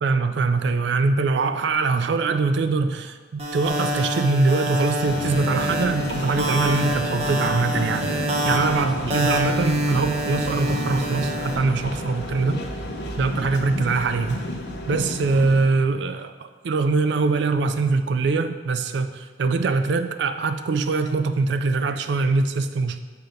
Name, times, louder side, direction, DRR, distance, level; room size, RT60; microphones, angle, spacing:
voice 1, 0.0-12.6 13.2-14.4 14.9-23.0, right 3 dB, 70° right, 9 dB, 0.4 m, -23 dB
sound 1, 3.4-11.6, right 1 dB, 35° right, 0.7 m, -26 dB
sound 2, 5.0-15.6, left 1 dB, 65° left, 0.8 m, -31 dB
7.8 x 2.8 x 5.0 m, 1.4 s
head